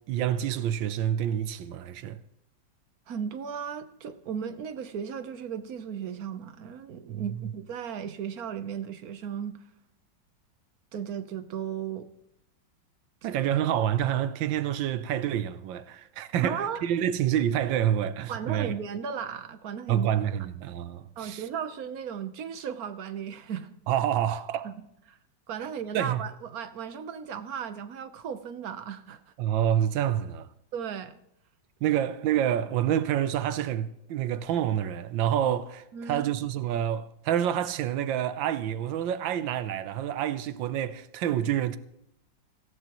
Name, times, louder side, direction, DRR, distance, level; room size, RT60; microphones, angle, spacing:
voice 1, 0.1-2.2 7.1-7.2 13.2-18.8 19.9-21.4 23.9-24.7 25.6-25.7 25.9-26.2 29.4-30.5 31.8-41.8, right 10 dB, 85° right, 1.4 m, -28 dB
voice 2, 3.1-9.6 10.9-12.1 16.4-16.8 18.3-20.1 21.2-23.8 24.6-24.7 25.1-25.2 25.5-29.2 30.7-31.2 35.9-36.3, right 7 dB, 60° right, 1.3 m, -35 dB
18.5 x 16.0 x 3.0 m
omnidirectional pair, 2.0 m